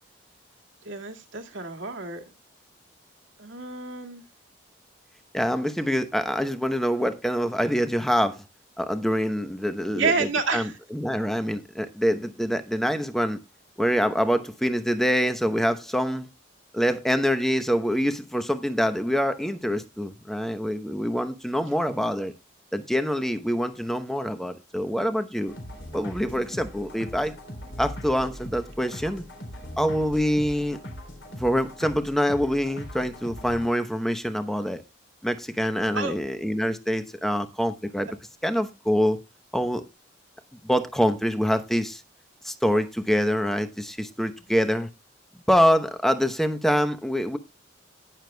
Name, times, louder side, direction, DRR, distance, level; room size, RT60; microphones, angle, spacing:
voice 1, 0.8-2.2 3.4-4.2 9.9-10.8 35.9-36.1, right 4 dB, 85° right, 1.9 m, -29 dB
voice 2, 5.3-8.4 8.8-13.4 13.8-16.3 16.7-22.3 22.7-25.5 25.9-27.3 27.8-29.2 29.8-30.8 31.4-34.8 35.2-38.1 38.4-39.2 39.5-39.8 40.6-42.0 42.4-44.9 45.5-47.4, equal, ahead, 0.9 m, -25 dB
sound 1, 25.5-33.7, equal, 70° left, 3.7 m, -40 dB
18.5 x 6.7 x 2.2 m
head